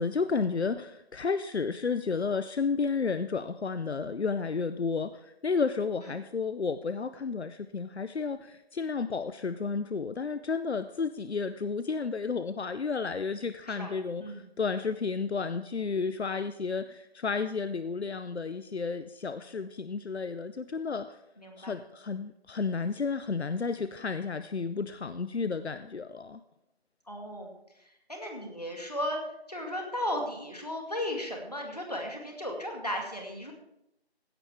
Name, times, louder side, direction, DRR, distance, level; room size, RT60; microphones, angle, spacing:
voice 1, 0.0-21.2 21.6-26.4, left 5 dB, 85° left, 12 dB, 0.6 m, -32 dB
voice 2, 13.6-14.0 14.2-14.4 21.4-21.8 27.1-27.5 28.1-29.2 29.5-33.5, left 1 dB, 40° left, 1 dB, 2.2 m, -35 dB
16.0 x 11.0 x 3.4 m, 0.85 s
figure-of-eight pair, 180°, 32 cm